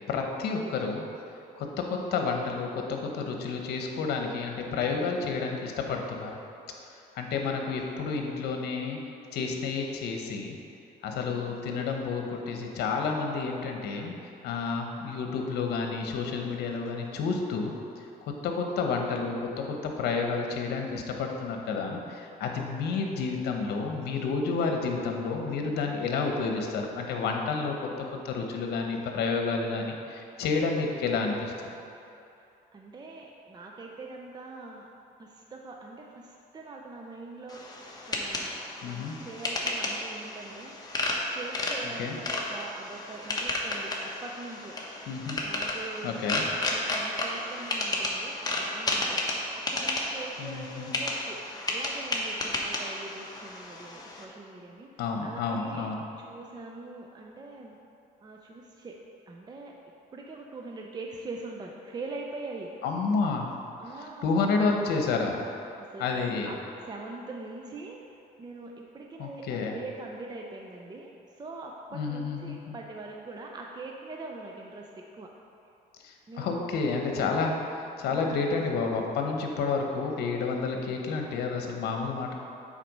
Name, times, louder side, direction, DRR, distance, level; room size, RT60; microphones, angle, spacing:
voice 1, 0.1-1.0 1.6-6.3 7.1-9.0 9.3-10.6 11.0-14.1 14.4-17.7 18.4-31.5 38.8-39.2 42.0-42.2 45.1-45.4 46.0-46.5 50.4-51.0 55.0-56.0 62.8-63.5 64.2-65.5 66.0-66.5 69.2-69.7 71.9-72.7 76.0-77.5 78.0-82.3, left 4 dB, 75° left, 2 dB, 1.0 m, -30 dB
voice 2, 32.4-34.9 35.2-37.7 38.1-40.9 41.3-44.8 45.4-51.4 51.7-55.9 56.2-57.8 58.2-59.0 59.3-59.7 60.1-62.7 63.8-64.4 65.8-66.6 66.8-68.0 68.4-75.3 76.3-76.7 78.1-78.5, right 3 dB, 25° right, 0 dB, 0.6 m, -43 dB
sound 1, 37.5-54.2, left 2 dB, 20° left, 1.1 m, -33 dB
7.6 x 4.2 x 5.4 m, 2.7 s
cardioid pair, 110°, 17 cm